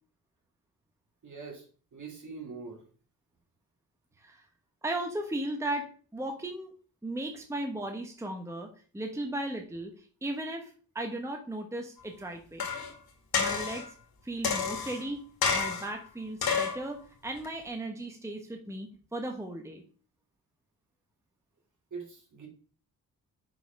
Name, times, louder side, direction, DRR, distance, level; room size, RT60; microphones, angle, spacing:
voice 1, 1.2-1.6 1.9-2.8 21.9-22.5, right 4 dB, 55° right, 0 dB, 2.9 m, -42 dB
voice 2, 4.8-6.7 7.0-8.7 8.9-12.7 13.4-14.0 14.2-19.8, right 1 dB, 10° right, 3 dB, 1.0 m, -36 dB
sound 1, 12.6-12.9 13.3-13.9 14.4-15.0 15.4-16.0 16.4-16.8 17.4-17.5, left 6 dB, 85° left, 1.9 m, -29 dB
5.9 x 4.9 x 5.2 m, 0.41 s
cardioid pair, 105°, 36 cm